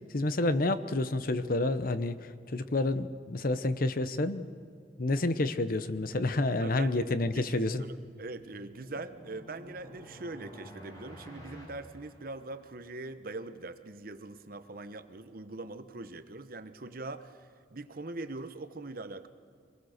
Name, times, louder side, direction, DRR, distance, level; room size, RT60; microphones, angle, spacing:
voice 1, 0.1-2.2 2.5-4.5 5.0-7.8, left 2 dB, 55° left, 12 dB, 0.8 m, -29 dB
voice 2, 6.6-19.3, right 2 dB, 55° right, 10 dB, 1.0 m, -42 dB
sound 1, 8.0-12.9, equal, 20° left, 4.1 m, -51 dB
24.5 x 19.5 x 6.6 m, 2.4 s
head